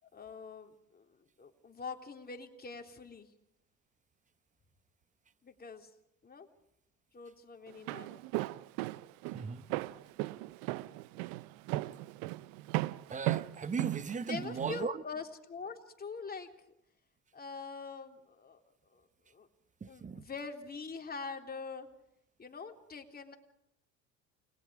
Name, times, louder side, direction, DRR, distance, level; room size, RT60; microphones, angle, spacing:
voice 1, 0.0-3.3 5.4-5.9 6.2-6.5 7.1-8.2 14.3-16.5 17.3-18.6 18.9-19.5 19.9-21.9 22.4-23.4, left 4 dB, 25° left, 3.3 m, -44 dB
Walk footsteps, 7.7-14.8, right 18 dB, 65° right, 0.8 m, -36 dB
voice 2, 9.3-9.7 13.1-15.0 19.8-20.2, right 5 dB, 20° right, 1.1 m, -37 dB
29.5 x 21.0 x 4.9 m
hypercardioid pair, 80°, 36 cm